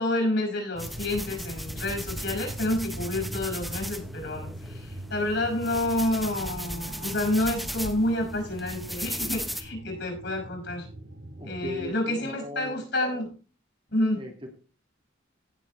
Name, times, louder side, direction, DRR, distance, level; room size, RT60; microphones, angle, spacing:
voice 1, 0.0-10.9 11.4-13.3 13.9-14.3, left 1 dB, 60° left, 3 dB, 5.8 m, -29 dB
sound 1, 0.7-11.9, right 1 dB, 65° right, 2.9 m, -41 dB
sound 2, 0.8-9.6, equal, ahead, 0.9 m, -37 dB
voice 2, 11.4-12.7 14.2-14.5, left 1 dB, 25° right, 3 dB, 2.1 m, -38 dB
16.5 x 7.4 x 3.2 m, 0.36 s
head